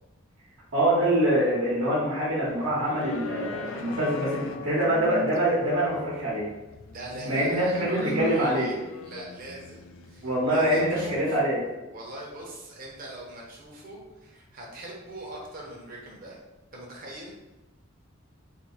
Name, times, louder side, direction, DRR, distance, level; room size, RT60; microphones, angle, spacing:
voice 1, 0.7-6.5 7.2-8.7 10.2-11.6, right 1 dB, 75° right, -7 dB, 1.0 m, -25 dB
sound 1, 2.5-11.2, left 3 dB, 70° left, 0.4 m, -39 dB
voice 2, 6.9-8.8 9.0-16.4 16.7-17.4, right 1 dB, 45° right, -2 dB, 0.8 m, -41 dB
2.8 x 2.6 x 4.0 m, 1.0 s
head